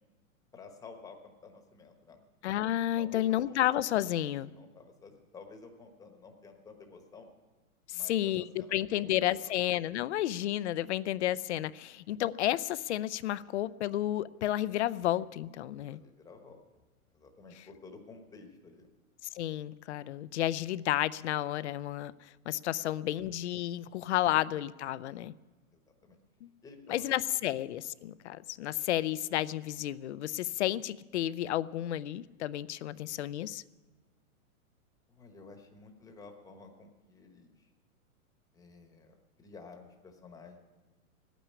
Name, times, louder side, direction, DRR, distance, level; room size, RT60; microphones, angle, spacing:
voice 1, 0.5-2.2 3.0-3.6 4.4-7.3 7.9-8.3 8.6-9.5 15.8-16.6 17.1-18.9 23.9-24.0 25.7-26.2 26.6-27.3 35.1-37.7 38.5-40.6, left 4 dB, 10° left, 4 dB, 1.1 m, -52 dB
voice 2, 2.4-4.5 7.9-16.0 19.3-25.3 26.4-26.5 26.9-33.6, left 13 dB, 50° left, 18 dB, 0.5 m, -31 dB
15.5 x 9.2 x 9.6 m, 1.3 s
hypercardioid pair, 155°, 44 cm